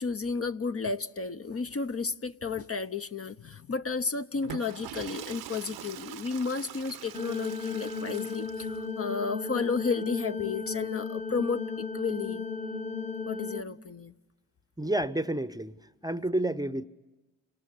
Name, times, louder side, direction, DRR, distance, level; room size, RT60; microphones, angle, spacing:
voice 1, 0.0-12.5 13.3-14.1, left 4 dB, 35° left, 0.8 m, -32 dB
Water / Toilet flush, 4.3-8.8, right 11 dB, 65° right, 0.9 m, -44 dB
sound 1, 7.1-13.6, left 4 dB, 15° left, 1.1 m, -35 dB
voice 2, 14.8-15.7 16.0-16.9, right 1 dB, 10° right, 0.8 m, -29 dB
28.5 x 19.0 x 9.7 m
hypercardioid pair, 45°, 40 cm